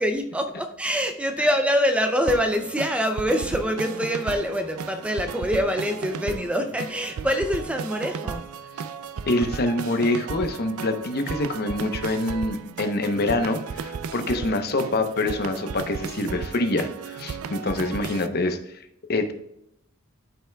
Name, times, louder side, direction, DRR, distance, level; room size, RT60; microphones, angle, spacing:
voice 1, 0.0-8.5, equal, 5° right, 6 dB, 0.4 m, -25 dB
sound 1, 2.3-18.3, right 6 dB, 85° right, 0.4 m, -35 dB
voice 2, 9.3-18.6 19.1-19.3, left 2 dB, 50° left, 7 dB, 0.8 m, -25 dB
12.0 x 5.8 x 2.3 m, 0.78 s
head